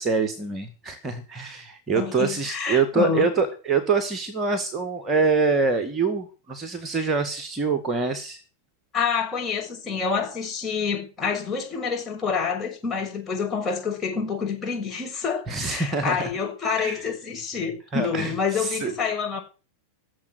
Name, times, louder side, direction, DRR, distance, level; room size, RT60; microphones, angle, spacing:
voice 1, 0.0-8.4 15.5-16.3 16.8-17.0 17.9-18.9, right 4 dB, 20° right, 1.9 m, -25 dB
voice 2, 1.9-3.3 8.9-19.4, left 6 dB, 20° left, 6.6 m, -27 dB
17.5 x 7.6 x 8.2 m
figure-of-eight pair, 90°, 0 cm